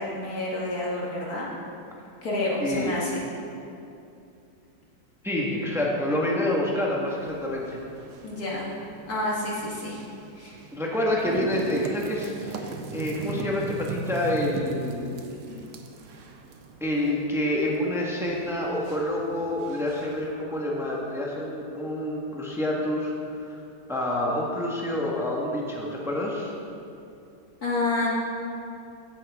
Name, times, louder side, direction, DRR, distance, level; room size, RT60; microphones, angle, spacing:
voice 1, 0.0-1.5 2.2-3.2 8.2-8.7 9.1-10.0 10.4-10.6 15.5-15.6 27.6-28.1, left 2 dB, 60° left, -5 dB, 2.0 m, -29 dB
voice 2, 2.6-2.9 5.2-7.8 10.7-15.4 16.8-23.6 23.9-26.5, left 1 dB, ahead, -3 dB, 1.2 m, -28 dB
sound 1, 7.1-20.3, right 3 dB, 70° right, 1.4 m, -39 dB
14.5 x 9.3 x 3.6 m, 2.6 s
omnidirectional pair, 1.9 m